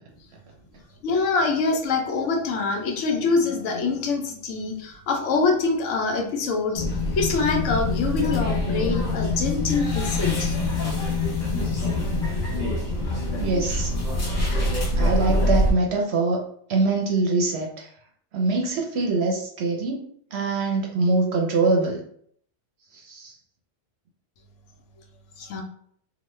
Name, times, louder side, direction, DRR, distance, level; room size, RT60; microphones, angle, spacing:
voice 1, 1.0-6.9 7.2-10.5 25.4-25.6, left 4 dB, 70° left, 2 dB, 1.0 m, -25 dB
sound 1, 6.7-15.7, left 2 dB, 45° left, 1.0 m, -25 dB
voice 2, 13.4-13.9 14.9-16.4 16.7-17.9 18.3-20.0 20.3-22.0 22.9-23.4, right 3 dB, 65° right, 0 dB, 0.7 m, -23 dB
3.0 x 2.1 x 3.1 m, 0.63 s
omnidirectional pair, 1.3 m